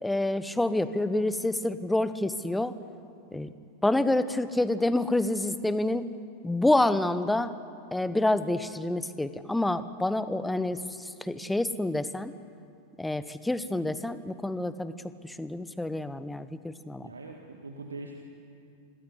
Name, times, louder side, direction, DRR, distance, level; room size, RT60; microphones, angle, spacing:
voice 1, 0.0-2.7 3.3-3.5 3.8-6.1 6.4-7.5 7.9-12.3 13.0-14.9 15.2-17.1, left 1 dB, 5° left, 14 dB, 1.1 m, -28 dB
voice 2, 17.0-18.2, right 3 dB, 75° right, 3 dB, 1.9 m, -42 dB
26.5 x 20.0 x 9.9 m, 2.5 s
figure-of-eight pair, 90°, 0 cm